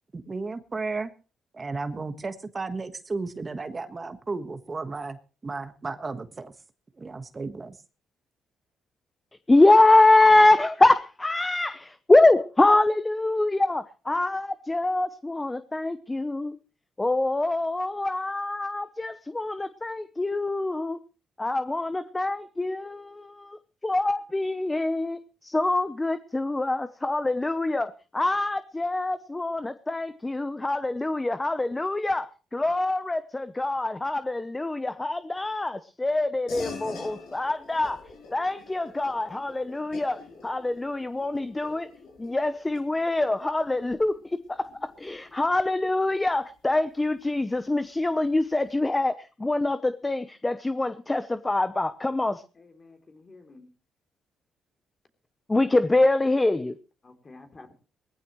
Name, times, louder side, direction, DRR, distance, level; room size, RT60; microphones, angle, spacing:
voice 1, 0.1-1.1 1.5-5.2 5.4-6.5 6.9-7.8, right 3 dB, 30° right, 1.4 m, -34 dB
voice 2, 9.5-16.6 17.0-21.0 21.4-38.0 38.3-41.9 42.2-52.4 55.5-56.8, left 2 dB, 15° left, 0.8 m, -24 dB
sound 1, 36.5-46.3, left 4 dB, 85° left, 7.5 m, -45 dB
voice 3, 52.5-53.7 57.0-57.7, left 3 dB, 30° left, 3.3 m, -50 dB
19.5 x 15.0 x 3.1 m
cardioid pair, 90°, 0 cm